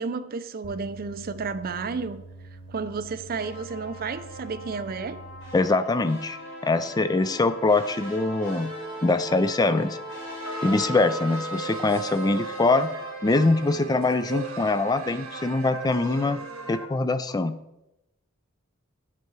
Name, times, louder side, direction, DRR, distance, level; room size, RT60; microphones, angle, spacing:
voice 1, 0.0-2.2 2.7-5.2, right 4 dB, 45° right, 11 dB, 0.5 m, -32 dB
sound 1, 0.6-5.5, right 2 dB, 25° right, 1.0 m, -45 dB
sound 2, 3.4-14.6, equal, 75° left, 3.6 m, -39 dB
voice 2, 5.5-8.7 9.0-10.0 10.6-12.9 13.2-16.4 16.7-17.5, left 3 dB, 20° left, 13 dB, 0.4 m, -23 dB
sound 3, 8.4-9.2 10.4-16.9, right 3 dB, 80° right, 1.1 m, -38 dB
7.5 x 6.6 x 4.7 m, 0.91 s
head